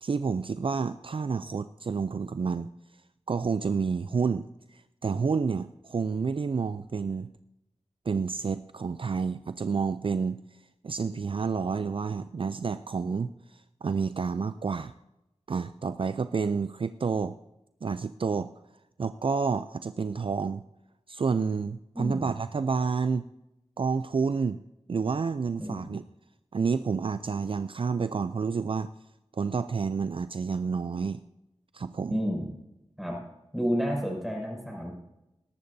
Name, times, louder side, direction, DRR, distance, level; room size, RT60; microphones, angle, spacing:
voice 1, 0.0-2.7 3.3-4.5 4.7-7.3 8.1-10.4 10.8-14.9 15.5-17.4 17.8-18.5 19.0-20.6 21.1-23.3 23.8-24.6 24.9-26.0 26.5-28.9 29.3-31.2 31.7-32.2, right 5 dB, 50° right, 12 dB, 0.4 m, -29 dB
voice 2, 21.9-22.3 25.6-25.9 32.1-32.5 33.0-33.2 33.5-34.9, equal, ahead, -1 dB, 5.9 m, -30 dB
20.5 x 12.0 x 2.7 m, 0.91 s
wide cardioid pair, 55°, 11 cm